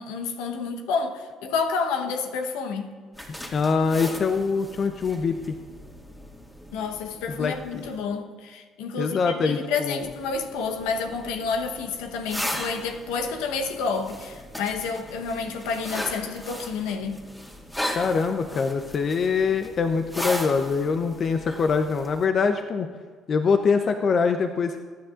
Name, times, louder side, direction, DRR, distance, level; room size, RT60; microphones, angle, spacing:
voice 1, 0.0-2.9 6.7-17.2, left 5 dB, 80° left, 1.1 m, -29 dB
sound 1, 3.1-8.0 10.0-22.3, equal, 10° left, 2.3 m, -37 dB
voice 2, 3.5-5.5 7.4-7.9 9.0-10.1 17.9-22.9 23.3-24.8, left 5 dB, 50° left, 0.8 m, -24 dB
22.5 x 10.0 x 2.6 m
hypercardioid pair, 60°, 0 cm